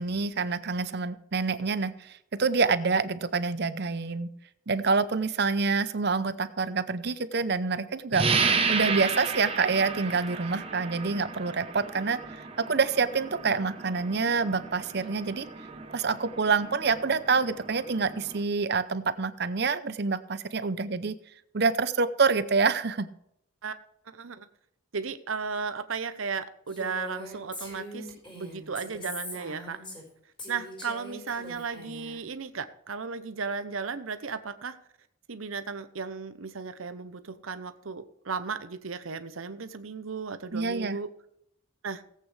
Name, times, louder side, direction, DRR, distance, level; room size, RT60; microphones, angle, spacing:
voice 1, 0.0-4.3 4.7-8.3 8.7-15.5 15.9-21.2 21.5-23.1 40.5-41.0, right 4 dB, 50° right, 14 dB, 0.7 m, -27 dB
sound 1, 8.1-18.4, right 4 dB, 25° right, 1.0 m, -33 dB
voice 2, 24.1-24.5 24.9-29.8 30.5-34.8 35.3-41.1 41.8-42.0, right 5 dB, 80° right, 11 dB, 0.8 m, -35 dB
Female speech woman speaking, 26.7-30.1 30.4-32.2, equal, 25° left, 4.5 m, -42 dB
17.5 x 8.6 x 3.3 m, 0.75 s
head